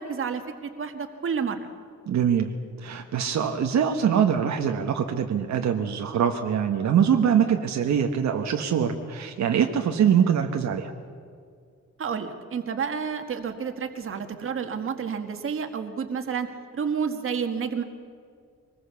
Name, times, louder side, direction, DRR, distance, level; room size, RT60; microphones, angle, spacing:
voice 1, 0.0-1.6 12.0-17.8, right 6 dB, 45° right, 6 dB, 1.7 m, -30 dB
voice 2, 2.1-2.5 2.8-10.9, right 8 dB, 70° right, 4 dB, 1.3 m, -23 dB
24.0 x 20.0 x 7.1 m, 2.2 s
wide cardioid pair, 175°, 29 cm